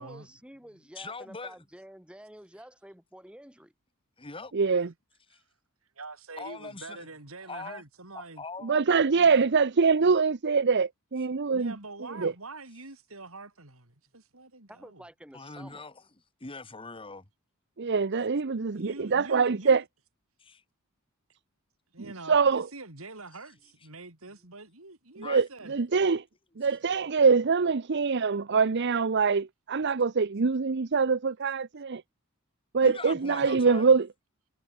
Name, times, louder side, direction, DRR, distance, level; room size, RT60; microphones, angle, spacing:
voice 1, 0.0-3.7 14.7-15.9, right 1 dB, 5° right, 7.4 m, -50 dB
voice 2, 1.0-1.5 4.2-4.5 5.3-5.4 6.4-7.1 7.4-7.8 8.1-8.8 15.3-16.0 16.4-17.2 20.4-20.6 25.2-25.4 32.8-33.9, left 3 dB, 25° left, 2.2 m, -41 dB
voice 3, 4.5-4.9 8.6-11.7 12.2-12.3 17.8-19.8 22.3-22.7 25.2-26.2 26.6-32.0 32.7-34.1, right 5 dB, 55° right, 0.7 m, -24 dB
voice 4, 6.0-8.4 9.1-9.5 11.5-15.0 18.8-19.8 21.9-25.8, right 3 dB, 70° right, 4.5 m, -45 dB
head